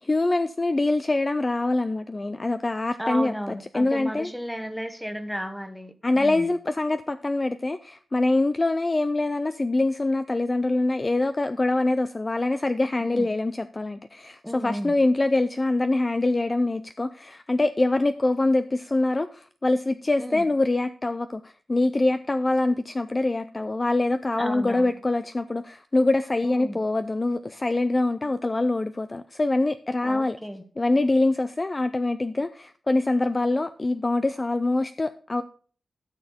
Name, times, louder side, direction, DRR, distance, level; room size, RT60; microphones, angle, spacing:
voice 1, 0.0-4.3 6.0-30.4 30.8-35.4, left 2 dB, 25° left, 0.4 m, -24 dB
voice 2, 3.0-6.5 13.0-13.3 14.4-14.9 20.2-20.5 24.4-24.9 26.4-26.8 30.0-30.6, equal, ahead, 1.2 m, -34 dB
12.5 x 6.6 x 4.3 m
wide cardioid pair, 145°, 0 cm